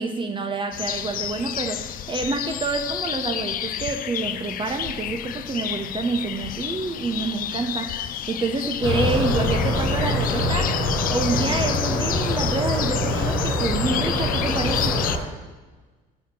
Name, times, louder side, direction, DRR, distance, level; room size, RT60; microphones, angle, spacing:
voice 1, 0.0-10.8 11.1-15.0, right 3 dB, 25° right, 5 dB, 0.7 m, -27 dB
sound 1, 0.7-15.2, left 11 dB, 50° left, 0.4 m, -31 dB
sound 2, 8.8-15.2, left 1 dB, 90° left, 1.5 m, -24 dB
5.8 x 4.2 x 6.1 m, 1.3 s
supercardioid pair, 80°, 19 cm